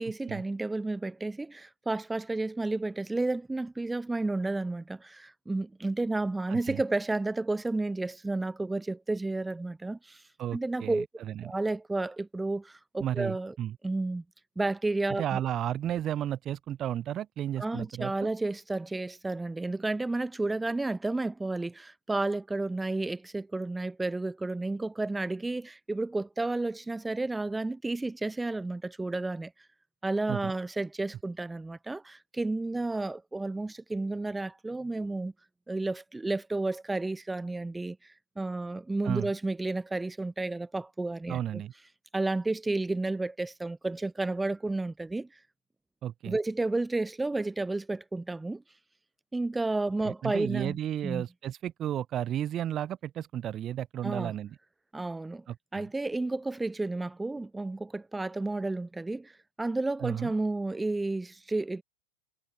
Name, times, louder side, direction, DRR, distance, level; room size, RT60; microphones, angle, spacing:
voice 1, 0.0-10.2 10.5-11.1 11.4-13.5 13.8-14.2 14.6-15.4 17.6-29.5 30.0-35.3 35.7-38.0 38.4-41.6 42.1-45.3 46.2-48.6 49.3-50.8 51.0-51.2 54.0-54.3 54.9-55.4 55.7-59.3 59.6-61.8, right 2 dB, 5° right, 2.0 m, -31 dB
voice 2, 6.5-6.8 10.4-11.5 13.0-13.8 15.2-18.1 30.3-30.5 39.0-39.3 41.3-41.7 46.0-46.3 50.0-54.6 55.5-55.9 60.0-60.3, right 11 dB, 30° right, 1.1 m, -33 dB
figure-of-eight pair, 90°, 0 cm